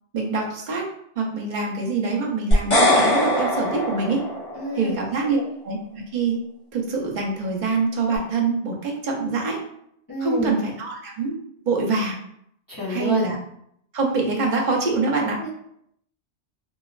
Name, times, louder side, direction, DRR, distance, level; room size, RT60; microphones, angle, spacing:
voice 1, 0.1-0.9 1.2-4.2 4.7-5.4 5.6-6.4 6.7-9.6 10.2-11.4 11.7-12.2 12.9-13.4 13.9-15.4, right 4 dB, 50° right, 0 dB, 0.7 m, -25 dB
sound 1, 2.5-4.8, left 1 dB, 55° left, 1.3 m, -21 dB
voice 2, 4.5-5.0 5.2-5.4 10.1-10.5 12.7-13.3 15.4-15.5, left 1 dB, 30° left, -5 dB, 0.4 m, -28 dB
3.0 x 2.5 x 2.4 m, 0.72 s
omnidirectional pair, 1.1 m